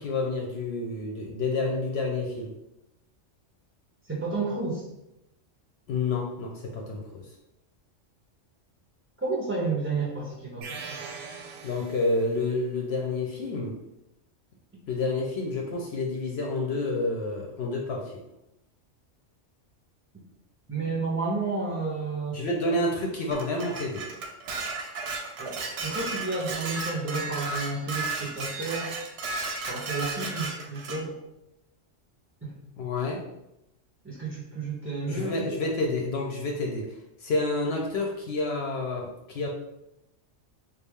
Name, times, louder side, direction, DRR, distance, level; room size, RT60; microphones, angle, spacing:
voice 1, 0.0-2.5 5.9-7.3 11.6-13.8 14.9-18.1 22.3-24.0 32.8-33.2 35.1-39.5, left 2 dB, 65° left, 0 dB, 0.7 m, -29 dB
voice 2, 4.1-4.8 9.2-11.0 20.7-22.4 25.4-29.0 29.7-31.2 32.4-32.6 34.0-35.5, right 3 dB, 20° right, -6 dB, 0.4 m, -31 dB
sound 1, 10.6-12.5, right 5 dB, 90° right, 1.0 m, -41 dB
Dishes pots and pans, 23.3-31.0, right 3 dB, 65° right, 0.8 m, -34 dB
3.3 x 2.3 x 3.5 m, 0.87 s
omnidirectional pair, 1.3 m